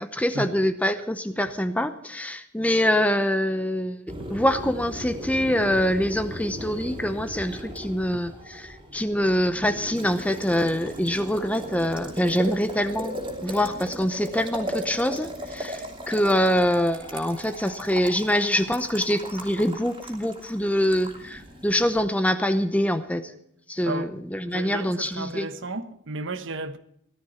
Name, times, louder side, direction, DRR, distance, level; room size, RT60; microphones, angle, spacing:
voice 1, 0.0-4.0 4.3-13.2 13.4-23.3 23.7-25.5, equal, 5° left, 0.7 m, -25 dB
Boiling, 4.1-22.0, equal, 25° right, 2.8 m, -37 dB
voice 2, 24.5-26.8, right 3 dB, 60° right, 1.1 m, -33 dB
18.0 x 13.0 x 4.4 m
head